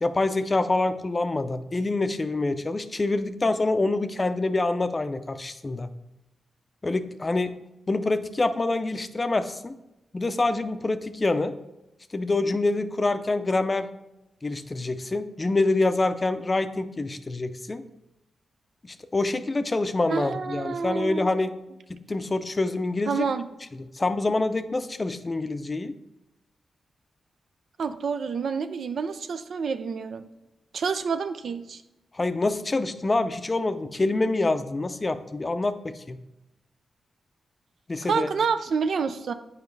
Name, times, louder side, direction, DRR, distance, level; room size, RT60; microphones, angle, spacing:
voice 1, 0.0-5.9 6.8-7.5 7.9-9.7 10.1-11.5 12.1-13.9 14.4-17.8 19.1-21.5 21.9-23.2 24.0-25.9 32.1-35.8 36.1-36.2 37.9-38.3, left 2 dB, 35° left, 10 dB, 0.5 m, -26 dB
voice 2, 20.1-21.3 23.1-23.5 27.8-30.3 30.7-31.8 38.0-39.3, right 5 dB, 70° right, 10 dB, 0.4 m, -28 dB
7.1 x 5.0 x 3.2 m, 0.95 s
cardioid pair, 65°, 0 cm